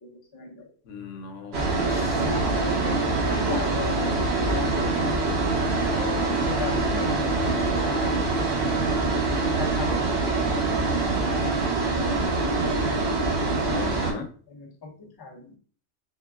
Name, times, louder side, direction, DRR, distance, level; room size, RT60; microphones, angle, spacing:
voice 1, 0.0-0.7 2.2-4.2 4.5-5.3 6.0-9.2 9.5-13.2 14.5-15.6, left 3 dB, 30° left, -1 dB, 0.5 m, -38 dB
voice 2, 0.8-2.8 13.7-14.3, left 5 dB, 90° left, 4 dB, 1.0 m, -39 dB
sound 1, 1.5-14.1, right 3 dB, 65° right, 1.0 m, -24 dB
3.6 x 2.3 x 2.3 m, 0.43 s
omnidirectional pair, 1.2 m